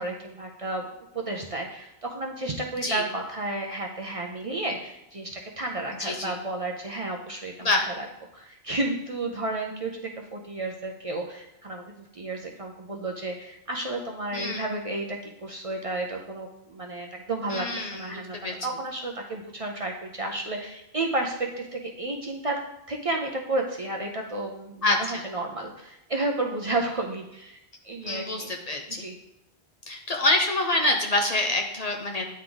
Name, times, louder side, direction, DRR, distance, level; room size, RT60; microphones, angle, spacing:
voice 1, 0.0-8.1 8.3-22.6 22.9-28.5 28.9-29.2, right 2 dB, 40° right, 1 dB, 0.6 m, -32 dB
voice 2, 6.0-6.3 7.6-7.9 14.3-14.6 17.5-18.5 24.8-25.2 28.0-29.1 29.9-32.3, left 2 dB, 45° left, 2 dB, 0.7 m, -26 dB
9.5 x 3.7 x 3.8 m, 0.84 s
omnidirectional pair, 1.1 m